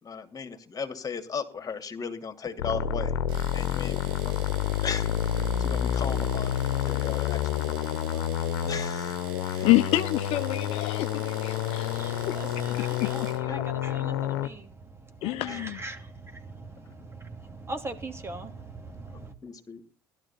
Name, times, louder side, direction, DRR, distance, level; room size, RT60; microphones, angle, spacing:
voice 1, 0.0-3.1 3.5-3.9 4.8-8.2 8.6-9.7 13.5-13.6 15.4-15.6 19.4-19.8, left 6 dB, 30° left, 2.7 m, -37 dB
sound 1, 2.6-14.5, left 9 dB, 75° left, 1.1 m, -29 dB
Domestic sounds home sounds, 3.3-13.5, right 6 dB, 75° right, 2.9 m, -47 dB
voice 2, 9.6-12.3 15.2-15.8, left 16 dB, 60° left, 0.8 m, -27 dB
voice 3, 11.8-19.3, right 2 dB, 20° right, 2.7 m, -41 dB
17.0 x 12.5 x 4.3 m
hypercardioid pair, 60°, 11 cm